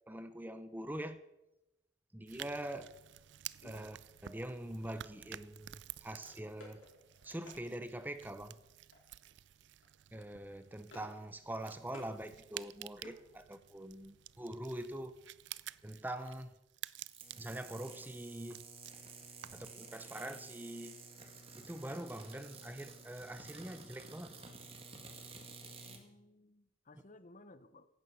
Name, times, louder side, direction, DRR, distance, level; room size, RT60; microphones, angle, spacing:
voice 1, 0.1-1.2 2.1-2.9 3.6-4.0 4.2-6.8 7.2-8.6 10.1-15.2 15.8-16.5 17.4-18.7 19.5-21.0 21.6-24.4, right 1 dB, 10° right, 11 dB, 0.6 m, -44 dB
sound 1, 2.3-19.8, right 13 dB, 60° right, 0.4 m, -52 dB
sound 2, 6.2-7.6 8.9-9.3 9.6-9.9 10.2-11.2 11.5-12.1 12.5-13.8, left 2 dB, 85° left, 4.7 m, -58 dB
sound 3, 17.0-26.0, right 4 dB, 30° right, 1.8 m, -52 dB
voice 2, 25.8-27.9, left 2 dB, 40° left, 13 dB, 0.7 m, -58 dB
16.0 x 11.5 x 5.5 m, 0.94 s
head